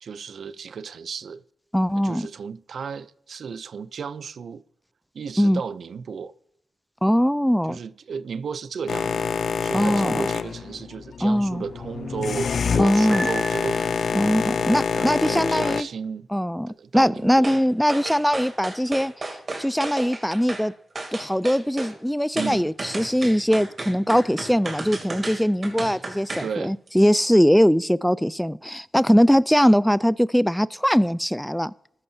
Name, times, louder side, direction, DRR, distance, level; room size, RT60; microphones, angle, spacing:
voice 1, 0.0-1.4 2.0-4.6 5.1-6.3 7.7-9.3 9.6-16.3 16.7-17.6 22.3-22.7 26.4-26.8, right 6 dB, 75° right, 0.5 m, -34 dB
voice 2, 1.7-2.3 5.4-5.6 7.0-7.8 9.7-10.3 11.2-11.6 12.8-13.3 14.1-15.9 16.3-19.1 19.6-20.7 21.1-31.7, equal, ahead, 0.3 m, -21 dB
Boat Water vehicle, 8.9-15.8, left 6 dB, 70° left, 0.4 m, -26 dB
Piano, 13.1-14.3, equal, 20° right, 4.9 m, -33 dB
sound 1, 17.4-17.6 17.9-20.7 21.0-21.9 22.4-26.5 26.9-27.0, right 2 dB, 50° right, 2.8 m, -33 dB
14.5 x 12.0 x 2.8 m
cardioid pair, 50°, 0 cm